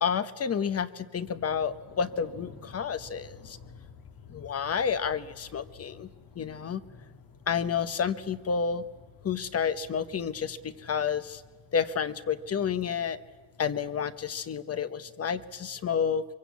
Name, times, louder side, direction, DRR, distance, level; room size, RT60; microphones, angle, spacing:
voice 1, 0.0-3.6 4.3-6.1 6.4-6.8 7.5-8.8 9.2-11.4 11.7-13.2 13.6-16.2, left 7 dB, 35° left, 13 dB, 0.9 m, -30 dB
sound 1, 1.3-14.5, left 6 dB, 60° left, 1.7 m, -53 dB
24.5 x 24.0 x 8.2 m, 1.4 s
wide cardioid pair, 170°, 40 cm